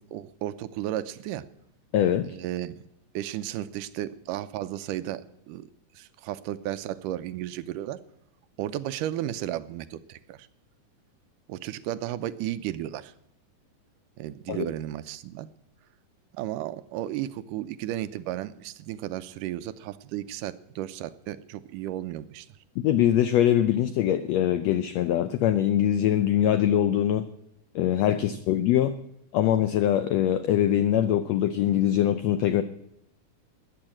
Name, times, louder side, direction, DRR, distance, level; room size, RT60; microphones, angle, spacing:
voice 1, 0.0-1.5 2.2-2.7 3.1-5.7 6.0-8.0 8.6-10.5 11.5-13.1 14.2-15.5 16.3-22.5, right 13 dB, 80° right, 14 dB, 2.2 m, -34 dB
voice 2, 1.9-2.3 14.5-14.7 22.8-27.2 27.7-28.9 29.3-32.6, left 11 dB, 85° left, 12 dB, 1.5 m, -23 dB
13.5 x 9.9 x 8.7 m, 0.78 s
omnidirectional pair, 3.7 m